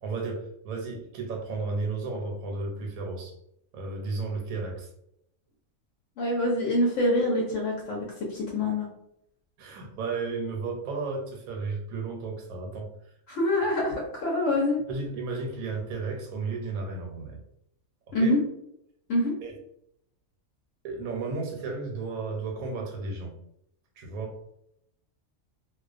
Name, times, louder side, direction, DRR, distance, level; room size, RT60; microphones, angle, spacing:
voice 1, 0.0-3.3 3.7-4.9 9.6-12.9 14.9-17.4 18.2-18.3 19.4-19.5 20.8-23.3 24.0-24.3, right 3 dB, 85° right, 1 dB, 1.1 m, -33 dB
voice 2, 6.2-8.9 13.3-14.8 18.1-18.4 19.1-19.3, left 1 dB, 65° left, -3 dB, 0.9 m, -25 dB
2.3 x 2.2 x 2.4 m, 0.75 s
omnidirectional pair, 1.5 m